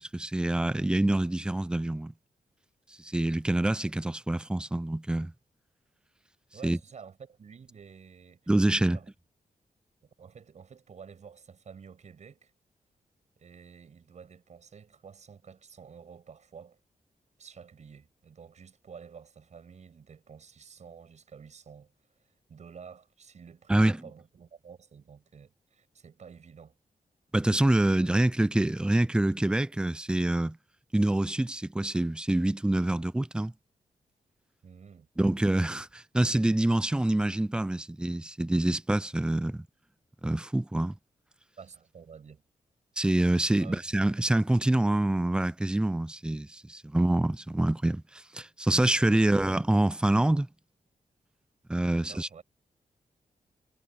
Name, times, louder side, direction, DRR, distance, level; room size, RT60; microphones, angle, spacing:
voice 1, 0.0-2.1 3.0-5.3 6.6-6.8 8.5-9.0 23.7-24.0 27.3-30.6 30.9-33.5 35.2-39.7 40.2-40.9 43.0-50.5 51.7-52.3, right 1 dB, 5° right, 0.4 m, -26 dB
voice 2, 6.5-8.5 8.9-9.1 10.0-12.5 13.4-16.8 17.4-21.9 22.2-26.7 34.6-35.1 41.6-42.4 43.6-43.8 49.1-49.3 51.9-52.4, right 6 dB, 55° right, 7.1 m, -50 dB
wide cardioid pair, 160°, 15 cm